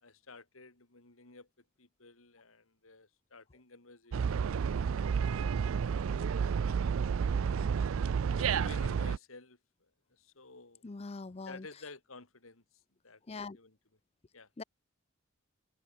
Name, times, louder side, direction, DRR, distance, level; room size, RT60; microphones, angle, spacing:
voice 1, 0.0-1.5 1.8-4.6 4.9-5.7 6.7-7.0 7.6-7.8 8.4-10.8 11.4-13.8 14.3-14.5, left 3 dB, 85° left, 3.4 m, -53 dB
sound 1, 4.1-9.2, right 6 dB, 80° right, 0.4 m, -30 dB
voice 2, 10.8-11.7 13.3-13.6 14.6-14.7, left 3 dB, 30° left, 0.5 m, -42 dB
head